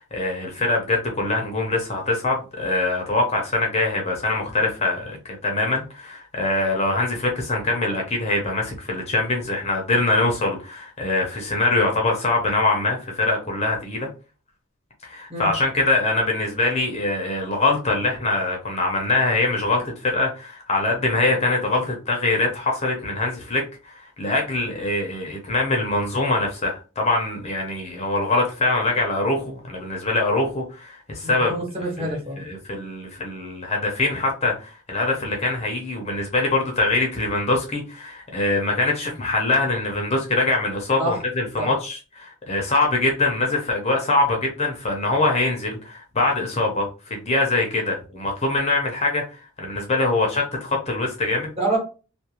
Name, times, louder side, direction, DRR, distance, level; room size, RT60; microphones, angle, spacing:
voice 1, 0.0-14.1 15.0-31.6 32.0-51.5, left 2 dB, 30° left, 0.6 m, -23 dB
voice 2, 31.2-32.4 41.0-41.1 41.6-41.7 51.6-51.8, right 2 dB, 30° right, 1.2 m, -26 dB
2.3 x 2.3 x 2.9 m
head